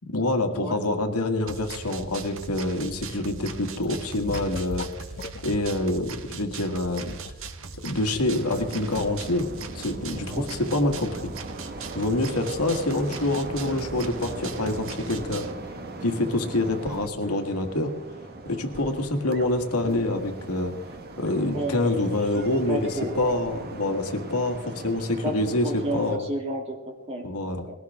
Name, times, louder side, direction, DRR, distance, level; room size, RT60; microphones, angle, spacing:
voice 1, 0.0-4.9 5.4-7.2 7.8-9.5 9.7-11.3 11.9-15.5 16.0-17.9 18.4-20.7 21.2-22.9 23.1-26.2 27.2-27.6, left 2 dB, 85° left, 5 dB, 1.8 m, -26 dB
sound 1, 1.5-15.5, right 5 dB, 60° right, 1.3 m, -40 dB
sound 2, 3.8-5.9 6.7-8.6 8.9-9.0, left 3 dB, 45° left, 0.7 m, -38 dB
sound 3, 8.3-26.2, right 2 dB, 45° right, 1.6 m, -39 dB
voice 2, 21.5-22.2 22.7-23.2 25.2-27.3 27.7-27.8, equal, 30° right, 2 dB, 2.7 m, -31 dB
20.5 x 17.5 x 3.6 m, 1.1 s
head